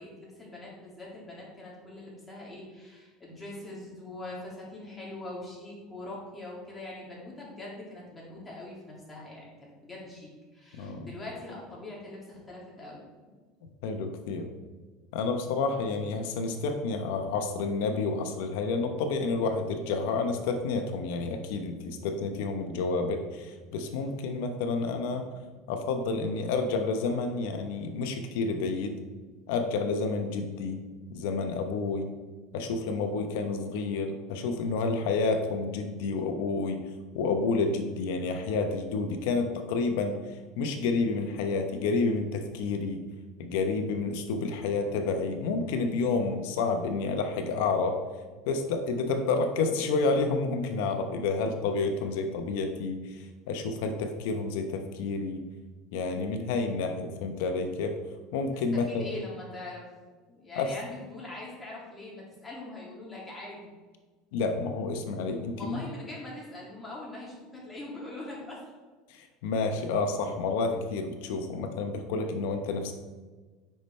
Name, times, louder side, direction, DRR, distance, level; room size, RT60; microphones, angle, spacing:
voice 1, 0.0-13.3 58.5-59.8 60.3-63.7 65.5-68.6, left 2 dB, 10° left, -5 dB, 2.4 m, -42 dB
voice 2, 10.8-11.1 13.8-14.5 15.1-25.3 25.7-29.0 29.5-30.8 31.1-32.1 32.5-36.8 37.1-40.2 40.6-43.0 43.4-48.0 48.4-55.4 55.9-57.9 58.3-59.0 60.6-60.7 64.3-65.8 69.1-72.9, left 4 dB, 75° left, 6 dB, 1.0 m, -29 dB
8.7 x 5.8 x 3.3 m, 1.4 s
supercardioid pair, 145°, 0 cm